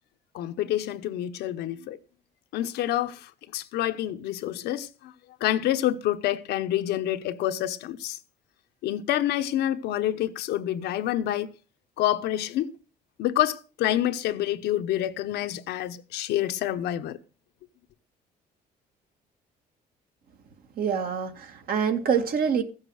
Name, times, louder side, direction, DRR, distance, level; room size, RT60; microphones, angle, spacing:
voice 1, 0.3-2.0 2.5-5.1 5.4-8.2 8.8-11.5 12.0-12.7 13.2-17.2, left 12 dB, 80° left, 1.0 m, -27 dB
voice 2, 20.8-22.6, right 7 dB, 60° right, 2.1 m, -26 dB
15.5 x 7.4 x 6.4 m
cardioid pair, 110°, 17 cm